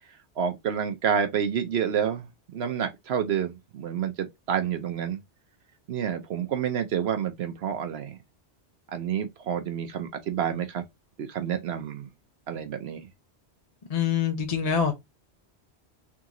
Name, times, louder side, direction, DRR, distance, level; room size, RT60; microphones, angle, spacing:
voice 1, 0.4-2.3 2.5-5.2 5.9-8.2 8.9-10.8 11.2-12.1 12.5-13.1, right 8 dB, 70° right, 0.9 m, -29 dB
voice 2, 13.9-14.9, left 7 dB, 40° left, 0.8 m, -25 dB
3.6 x 2.9 x 3.7 m
omnidirectional pair, 1.1 m